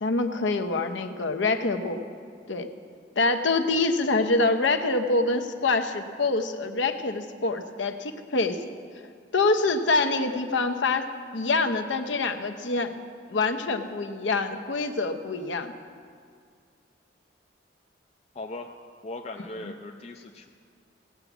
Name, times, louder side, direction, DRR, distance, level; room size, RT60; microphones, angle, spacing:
voice 1, 0.0-2.0 2.5-2.7 3.2-8.6 9.3-13.0 13.3-15.7 19.6-19.7, left 3 dB, 80° left, 7 dB, 0.8 m, -25 dB
voice 2, 18.3-18.7 19.0-20.5, left 2 dB, 35° left, 3 dB, 0.4 m, -38 dB
17.0 x 6.0 x 8.0 m, 2.1 s
head